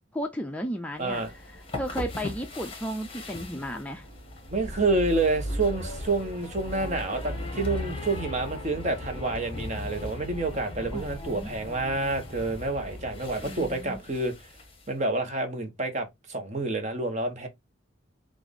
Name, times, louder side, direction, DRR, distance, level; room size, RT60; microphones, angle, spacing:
voice 1, 0.1-1.2 1.7-4.1 10.9-11.5 13.4-14.0, equal, 5° left, 0.4 m, -34 dB
sound 1, 1.0-14.9, left 1 dB, 30° left, 1.3 m, -37 dB
voice 2, 1.0-1.3 4.5-14.3 14.9-17.5, right 2 dB, 35° right, 1.1 m, -28 dB
5.9 x 2.5 x 3.5 m
head